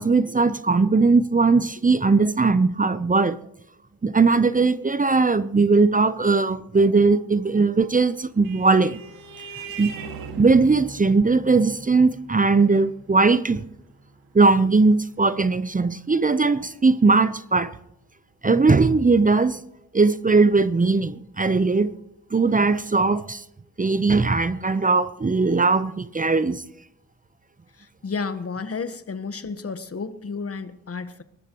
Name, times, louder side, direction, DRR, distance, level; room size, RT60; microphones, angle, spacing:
voice 1, 0.0-3.4 4.0-9.0 9.8-9.9 10.4-13.6 14.3-17.7 18.4-19.6 19.9-21.9 22.3-23.4 23.8-26.6, right 4 dB, 25° right, 0.8 m, -19 dB
Vehicle horn car horn honking, 7.9-16.8, right 4 dB, 85° right, 2.1 m, -42 dB
voice 2, 27.8-31.2, left 4 dB, 40° left, 1.3 m, -32 dB
22.0 x 18.5 x 3.1 m
supercardioid pair, 45°, 34 cm